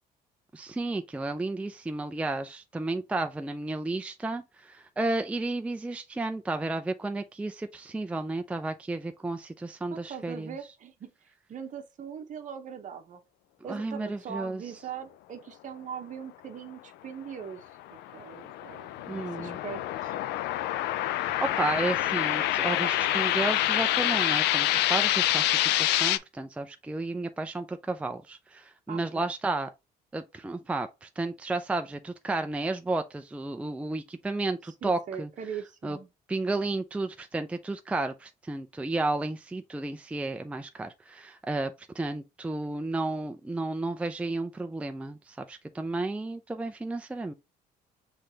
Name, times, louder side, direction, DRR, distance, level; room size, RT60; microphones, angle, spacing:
voice 1, 0.5-10.6 13.7-14.6 19.1-19.6 21.2-29.7 30.1-35.3 35.8-36.0 36.3-47.3, right 2 dB, 5° right, 0.4 m, -32 dB
voice 2, 9.9-11.1 11.5-13.2 13.6-17.6 17.9-20.2 28.9-29.3 34.8-36.1, right 7 dB, 50° right, 0.9 m, -41 dB
sound 1, 17.8-26.2, left 14 dB, 80° left, 0.4 m, -27 dB
5.7 x 3.3 x 2.7 m
cardioid pair, 110°, 17 cm